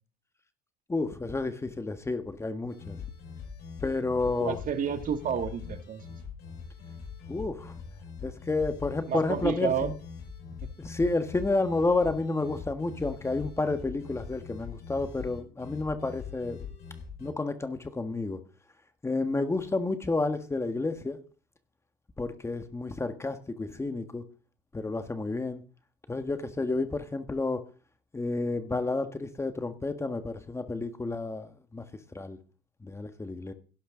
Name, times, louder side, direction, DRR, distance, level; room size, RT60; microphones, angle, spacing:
voice 1, 0.9-3.0 3.8-4.6 7.3-7.7 8.2-9.9 10.8-16.6 17.2-18.4 19.0-21.2 22.2-24.2 24.7-25.6 26.1-27.6 28.1-31.8 32.1-32.4 32.8-33.5, left 3 dB, 15° left, 1.5 m, -30 dB
sound 1, 2.7-17.3, left 6 dB, 50° left, 5.9 m, -42 dB
voice 2, 4.4-6.0 9.1-9.9 10.6-10.7, right 7 dB, 40° right, 2.0 m, -30 dB
17.0 x 11.5 x 3.9 m
cardioid pair, 130°, 20 cm